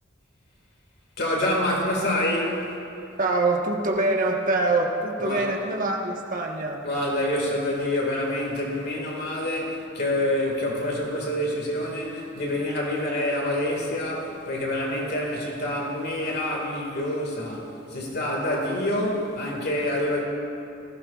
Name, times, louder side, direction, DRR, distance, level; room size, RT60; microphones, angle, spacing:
voice 1, 1.2-2.7 5.2-5.5 6.8-20.2, left 1 dB, 55° left, -1 dB, 2.0 m, -27 dB
voice 2, 3.2-6.8, right 2 dB, 45° right, 0 dB, 1.3 m, -24 dB
19.5 x 15.5 x 2.4 m, 2.7 s
head